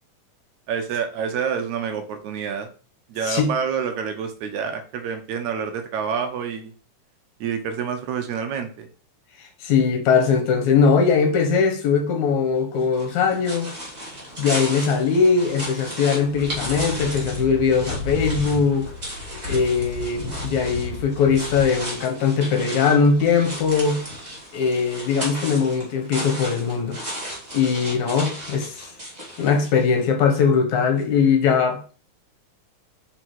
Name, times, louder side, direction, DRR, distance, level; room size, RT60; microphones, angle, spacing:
voice 1, 0.7-2.7 3.1-6.7 7.4-8.9, right 7 dB, 75° right, 2.1 m, -27 dB
voice 2, 9.6-13.7 14.4-18.9 19.5-24.0 24.5-27.0 27.5-28.7 29.4-31.8, left 5 dB, 75° left, 2.4 m, -20 dB
sound 1, 12.8-30.0, equal, 15° right, 1.9 m, -35 dB
sound 2, 16.2-22.0, left 3 dB, 50° left, 2.6 m, -33 dB
4.9 x 4.8 x 4.6 m
omnidirectional pair, 3.5 m